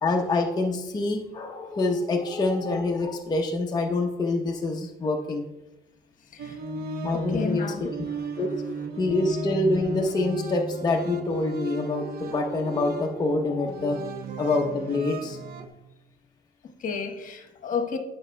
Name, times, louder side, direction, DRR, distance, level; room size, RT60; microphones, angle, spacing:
voice 1, 0.0-5.5 7.0-7.9 8.4-8.5 9.0-14.0 14.4-15.4, left 2 dB, 25° left, 1 dB, 0.7 m, -26 dB
sound 1, 6.4-15.7, right 2 dB, 65° right, 0.9 m, -35 dB
voice 2, 7.1-8.5 16.6-18.0, left 5 dB, 50° left, 5 dB, 1.2 m, -33 dB
14.5 x 5.9 x 2.2 m, 1.0 s
cardioid pair, 110°, 17 cm